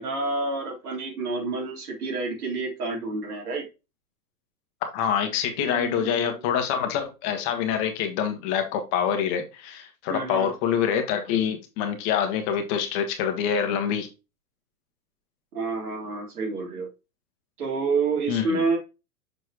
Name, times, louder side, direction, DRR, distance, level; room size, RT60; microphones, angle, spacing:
voice 1, 0.0-3.6 5.6-6.6 10.1-10.5 15.5-16.9 17.6-18.8, right 3 dB, 80° right, 3.8 m, -29 dB
voice 2, 4.8-14.1 18.3-18.6, left 8 dB, 45° left, 1.7 m, -26 dB
6.7 x 4.7 x 3.0 m
hypercardioid pair, 110°, 44 cm